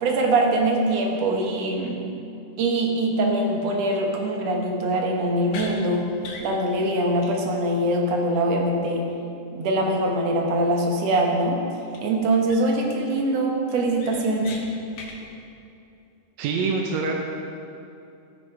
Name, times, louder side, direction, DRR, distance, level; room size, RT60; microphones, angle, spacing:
voice 1, 0.0-2.0 2.6-6.1 6.4-9.1 9.5-11.6 12.0-14.5, right 1 dB, 60° right, 0 dB, 2.0 m, -23 dB
sound 1, 5.5-5.7 6.2-6.5 6.8-6.9 7.2-7.3 7.6-7.7 11.9-12.0 12.5-12.8 13.2-13.3 13.7-14.6 14.9-15.2, left 4 dB, 65° left, 2.2 m, -39 dB
voice 2, 16.4-17.2, right 4 dB, 80° right, 1 dB, 1.6 m, -25 dB
14.0 x 6.7 x 4.8 m, 2.7 s
omnidirectional pair, 3.9 m